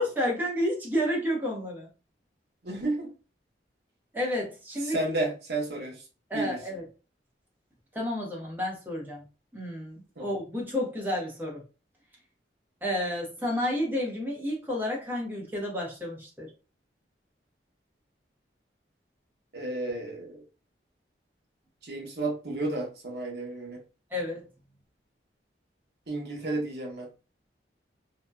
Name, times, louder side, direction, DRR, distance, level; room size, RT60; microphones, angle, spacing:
voice 1, 0.0-1.9 4.1-5.0 6.3-6.8 7.9-9.2 9.5-11.6 12.8-16.5 24.1-24.4, left 1 dB, 10° right, 0.7 m, -30 dB
voice 2, 2.6-3.1 4.8-6.0 6.3-6.6 10.2-10.3 19.5-20.4 21.8-23.8 26.1-27.1, right 2 dB, 65° right, 0.8 m, -32 dB
2.6 x 2.1 x 2.2 m
head